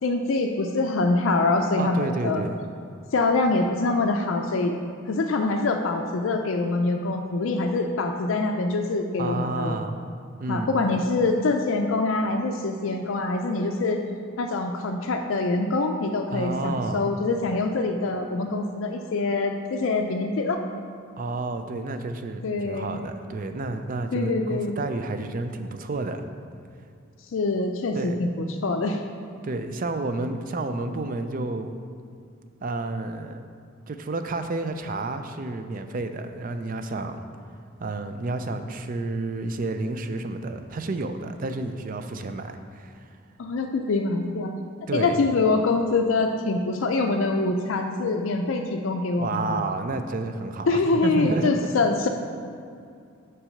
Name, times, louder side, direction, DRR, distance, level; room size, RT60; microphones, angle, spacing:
voice 1, 0.0-2.4 3.1-4.8 5.1-9.8 10.5-14.0 14.4-20.6 22.4-23.0 24.1-24.8 27.3-29.0 43.4-44.6 44.9-49.6 50.7-52.1, left 3 dB, 65° left, 3 dB, 0.4 m, -24 dB
voice 2, 1.8-2.6 9.2-10.0 10.4-10.8 16.3-17.1 21.2-26.3 27.9-28.3 29.4-31.7 32.6-33.4 33.9-37.2 37.8-43.0 44.9-45.2 49.2-51.5, right 3 dB, 40° right, 8 dB, 0.4 m, -30 dB
5.9 x 4.7 x 6.4 m, 2.4 s
head